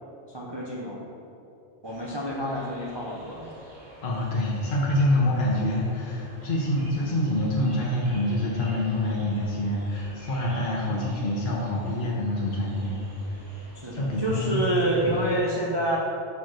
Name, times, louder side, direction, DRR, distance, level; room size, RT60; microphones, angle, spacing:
voice 1, 0.3-1.0 1.8-3.5 13.8-16.0, right 1 dB, 30° right, -4 dB, 0.6 m, -28 dB
sound 1, 1.8-15.4, equal, 75° right, 2.0 m, -48 dB
voice 2, 4.0-13.0 13.9-15.3, left 1 dB, 50° left, -3 dB, 1.0 m, -26 dB
5.8 x 5.1 x 5.9 m, 2.8 s
omnidirectional pair, 1.2 m